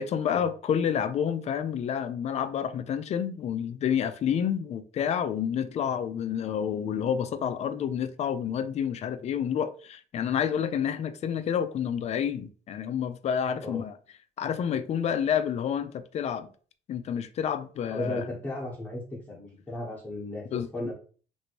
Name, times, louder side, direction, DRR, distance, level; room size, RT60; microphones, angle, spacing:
voice 1, 0.0-14.0 14.4-16.5 16.9-18.2 20.5-20.7, left 8 dB, 40° left, 0.4 m, -29 dB
voice 2, 17.9-19.0 19.3-20.9, left 1 dB, 10° left, 1.0 m, -35 dB
2.9 x 2.6 x 2.8 m
cardioid pair, 110°, 17 cm